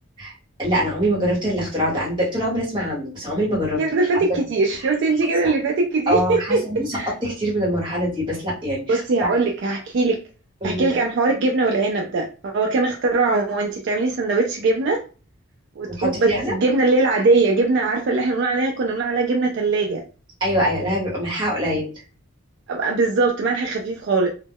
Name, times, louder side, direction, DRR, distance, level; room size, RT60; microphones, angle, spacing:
voice 1, 0.6-3.8 4.1-4.2 5.4-5.5 6.1-9.3 10.6-10.9 15.9-16.5 20.4-21.9, equal, 20° right, -5 dB, 1.0 m, -24 dB
voice 2, 3.8-6.6 6.9-7.1 8.9-10.2 10.6-15.0 15.8-20.0 22.7-24.3, right 3 dB, 55° right, 1 dB, 0.3 m, -21 dB
2.1 x 2.0 x 3.4 m, 0.36 s
head